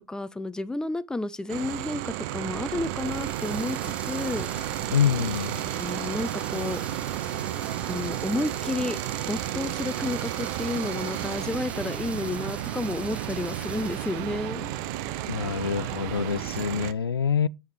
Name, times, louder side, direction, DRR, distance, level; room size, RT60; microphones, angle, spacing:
voice 1, 0.1-4.5 5.8-6.8 7.8-9.0 9.3-14.7, left 2 dB, 5° left, 0.5 m, -31 dB
sound 1, 1.5-16.9, right 15 dB, 50° right, 0.5 m, -33 dB
sound 2, 2.8-14.5, right 2 dB, 10° right, 1.0 m, -43 dB
sound 3, 3.1-16.9, right 6 dB, 70° right, 1.1 m, -43 dB
voice 2, 4.9-5.6 15.3-17.5, left 7 dB, 85° left, 0.4 m, -26 dB
9.7 x 3.6 x 4.5 m
figure-of-eight pair, 90°, 12 cm